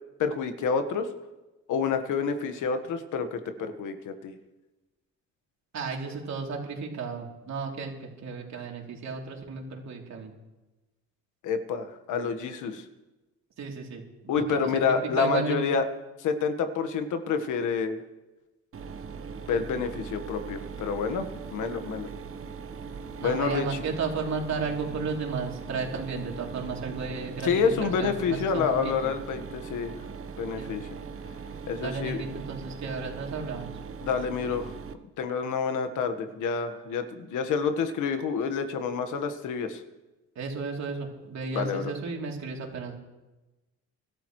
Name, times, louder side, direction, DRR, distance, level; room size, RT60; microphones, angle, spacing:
voice 1, 0.2-1.1 1.7-4.3 11.4-12.8 14.3-15.8 16.2-18.0 19.5-22.1 23.2-23.6 27.4-29.9 30.4-30.8 31.7-32.2 34.0-34.7 35.2-39.8 41.5-41.8, left 5 dB, 80° left, 8 dB, 1.5 m, -28 dB
voice 2, 5.7-10.3 13.6-15.6 23.2-29.1 30.6-30.8 31.8-33.7 40.3-42.9, right 4 dB, 65° right, 0 dB, 3.2 m, -34 dB
Mechanisms, 18.7-34.9, right 5 dB, 45° right, 1.1 m, -40 dB
25.5 x 12.5 x 3.2 m, 1.1 s
cardioid pair, 90°, 30 cm